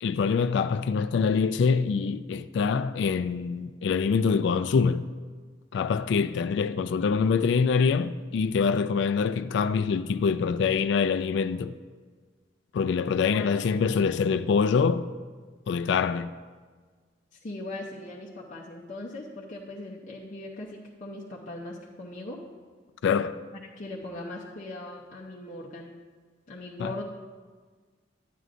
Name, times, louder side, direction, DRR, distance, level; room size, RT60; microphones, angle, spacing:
voice 1, 0.0-5.1 5.7-11.7 12.7-15.1 15.7-16.3 23.0-23.4 26.8-27.0, left 5 dB, 70° left, 0.3 m, -25 dB
voice 2, 17.3-22.4 23.8-25.9 26.5-27.0, left 2 dB, 45° left, 0.7 m, -39 dB
11.0 x 9.2 x 2.5 m
head